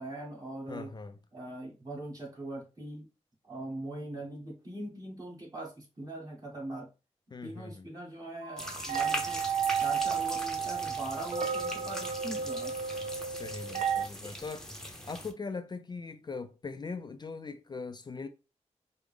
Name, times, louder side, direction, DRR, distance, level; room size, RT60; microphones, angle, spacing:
voice 1, 0.0-0.9 1.3-3.1 3.4-6.9 7.4-9.4 9.8-12.7 14.2-14.4, right 1 dB, 30° right, 1.7 m, -41 dB
voice 2, 0.7-1.2 7.3-7.9 13.2-18.3, left 4 dB, 40° left, 0.3 m, -41 dB
sound 1, 8.4-14.1, right 7 dB, 80° right, 0.4 m, -32 dB
sound 2, 8.6-15.3, left 1 dB, 5° left, 0.8 m, -41 dB
4.7 x 2.1 x 3.4 m
wide cardioid pair, 80°, 12 cm